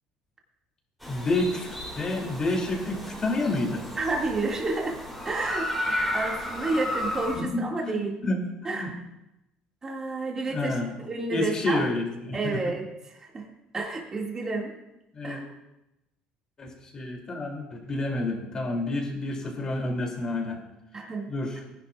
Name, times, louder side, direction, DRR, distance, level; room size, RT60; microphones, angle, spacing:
sound 1, 1.0-7.4, left 1 dB, ahead, 3.4 m, -33 dB
voice 1, 1.1-3.8 7.3-8.9 10.5-10.9 11.3-12.6 15.1-15.4 16.6-20.6 21.3-21.6, left 2 dB, 30° left, 0 dB, 2.9 m, -29 dB
voice 2, 4.0-5.0 5.2-5.7 6.1-8.2 8.6-9.0 9.8-11.8 12.3-13.5 13.7-14.7 15.2-15.4 20.9-21.3, right 3 dB, 25° right, -1 dB, 2.2 m, -30 dB
19.0 x 10.5 x 2.5 m, 0.92 s
cardioid pair, 125°, 2 cm